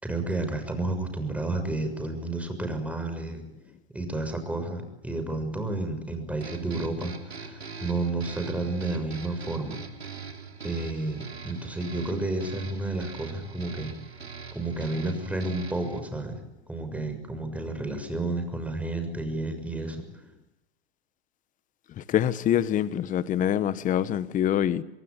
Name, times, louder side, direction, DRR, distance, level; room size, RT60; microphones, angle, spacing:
voice 1, 0.0-3.4 3.9-9.8 10.6-13.9 14.5-16.4 16.7-20.1, right 2 dB, 5° right, 6.7 m, -31 dB
sound 1, 6.4-16.0, right 5 dB, 90° right, 3.6 m, -42 dB
voice 2, 22.0-24.8, left 10 dB, 25° left, 1.3 m, -25 dB
26.5 x 21.5 x 9.8 m
hypercardioid pair, 110°, 31 cm